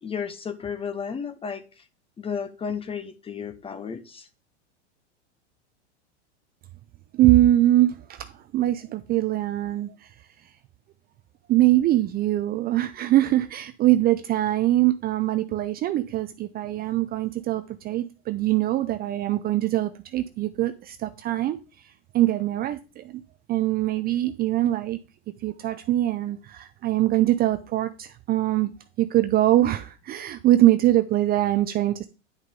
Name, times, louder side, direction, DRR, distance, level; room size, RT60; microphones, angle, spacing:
voice 1, 0.0-1.6 2.2-4.3, left 6 dB, 15° left, 0.9 m, -33 dB
voice 2, 7.1-9.9 11.5-21.6 22.1-23.2 23.5-25.0 25.4-28.7 29.0-32.1, right 14 dB, 25° right, 0.5 m, -23 dB
9.9 x 6.4 x 3.7 m
hypercardioid pair, 110°, 35 cm